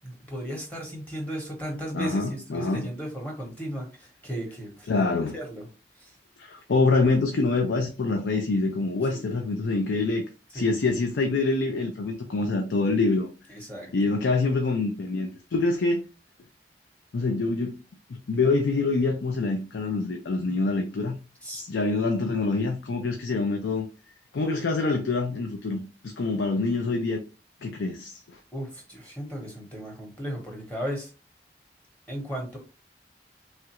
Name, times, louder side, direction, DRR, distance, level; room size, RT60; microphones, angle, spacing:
voice 1, 0.0-5.7 6.0-6.1 9.1-9.2 10.5-10.7 13.5-13.9 21.4-21.6 22.0-22.1 22.9-23.0 28.5-31.1 32.1-32.6, right 1 dB, 10° left, 0.8 m, -35 dB
voice 2, 1.9-2.8 4.9-5.3 6.4-10.2 10.5-13.3 13.9-16.0 17.1-17.8 18.1-21.2 21.5-23.9 24.3-27.2 27.6-28.4, left 3 dB, 90° left, 0.5 m, -25 dB
3.1 x 2.4 x 2.8 m
head